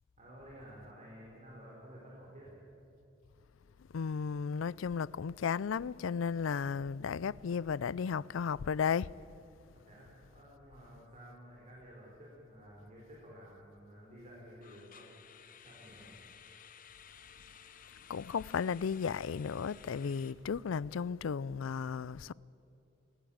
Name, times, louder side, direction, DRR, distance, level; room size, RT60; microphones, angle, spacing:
voice 1, 0.2-2.5 9.7-15.1 15.6-16.1, equal, 35° right, 4.7 m, -53 dB
voice 2, 3.9-9.1 18.1-22.3, left 6 dB, 85° left, 0.4 m, -34 dB
sound 1, 14.6-20.3, left 8 dB, 45° left, 1.0 m, -56 dB
20.0 x 19.5 x 8.8 m
head